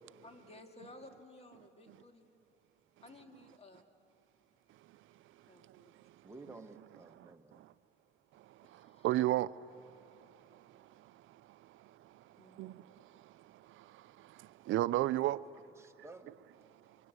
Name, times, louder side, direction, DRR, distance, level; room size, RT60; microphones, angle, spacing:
voice 1, 0.1-2.3 3.0-3.8 5.5-5.9 8.6-9.1 12.4-12.6, left 2 dB, 30° left, 2.4 m, -56 dB
voice 2, 5.6-6.2 7.2-7.3 7.6-7.7 8.3-15.4, right 15 dB, 85° right, 0.6 m, -37 dB
voice 3, 6.2-7.6 15.3-16.3, right 2 dB, 15° right, 1.6 m, -54 dB
25.5 x 24.0 x 8.1 m
cardioid pair, 90°, 20 cm